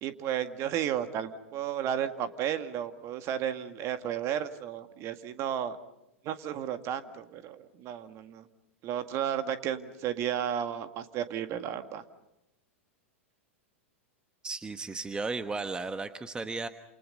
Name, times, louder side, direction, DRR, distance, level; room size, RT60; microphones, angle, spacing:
voice 1, 0.0-5.8 6.2-8.5 8.8-12.0, right 10 dB, 40° right, 9 dB, 1.9 m, -33 dB
voice 2, 14.4-16.7, right 3 dB, 10° right, 10 dB, 1.2 m, -35 dB
29.0 x 28.0 x 5.5 m, 0.89 s
hypercardioid pair, 100°, 7 cm